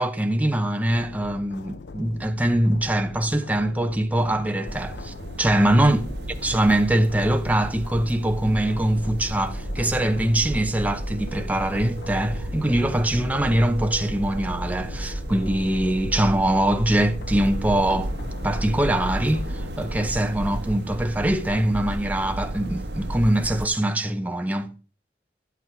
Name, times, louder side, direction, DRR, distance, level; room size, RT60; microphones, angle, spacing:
voice 1, 0.0-6.0 6.4-18.1 18.4-24.7, right 1 dB, 10° right, 0.7 m, -23 dB
sound 1, 0.9-20.1, left 4 dB, 65° left, 0.5 m, -41 dB
sound 2, 4.7-23.7, right 1 dB, 70° right, 1.2 m, -33 dB
10.5 x 8.3 x 4.6 m
head